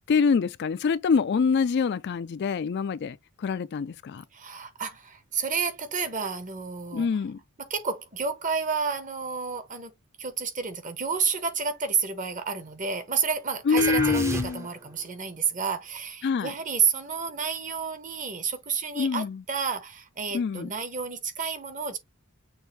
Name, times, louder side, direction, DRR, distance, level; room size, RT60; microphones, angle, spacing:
voice 1, 0.1-4.2 6.9-7.4 13.7-14.7 16.2-16.5 18.9-19.4 20.3-20.7, left 5 dB, 50° left, 0.3 m, -25 dB
voice 2, 4.3-7.1 7.6-9.9 10.2-22.0, right 5 dB, 35° right, 1.0 m, -30 dB
sound 1, 13.8-14.9, right 1 dB, 15° right, 0.6 m, -30 dB
6.3 x 2.5 x 3.3 m
head